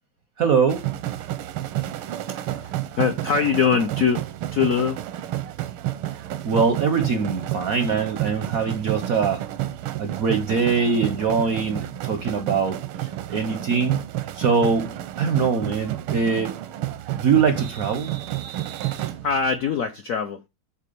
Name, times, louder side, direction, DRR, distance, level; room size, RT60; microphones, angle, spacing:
voice 1, 0.4-0.8 6.4-9.4 10.0-14.0 14.3-16.6 17.1-18.2, right 5 dB, 65° right, 0.8 m, -23 dB
sound 1, 0.7-19.7, right 13 dB, 85° right, 1.6 m, -31 dB
voice 2, 2.3-5.0 19.2-20.4, left 6 dB, 70° left, 0.8 m, -23 dB
7.6 x 4.3 x 5.2 m
omnidirectional pair, 2.3 m